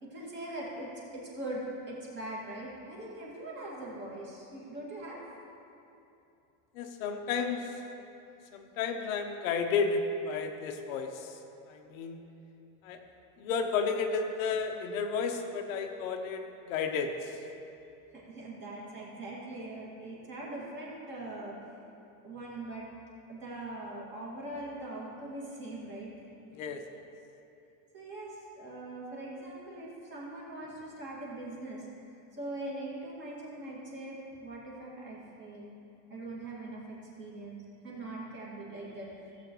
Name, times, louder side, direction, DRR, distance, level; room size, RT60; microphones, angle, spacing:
voice 1, 0.0-5.2 18.1-21.6 22.2-22.9 23.3-26.1 27.9-31.9 32.4-35.7 36.1-39.4, right 1 dB, 25° right, -5 dB, 2.1 m, -41 dB
voice 2, 6.7-7.7 8.5-11.3 11.7-12.2 12.8-13.0 13.4-17.3 26.6-26.8, left 5 dB, 65° left, 4 dB, 0.9 m, -32 dB
16.0 x 7.8 x 3.1 m, 2.8 s
supercardioid pair, 165°, 43 cm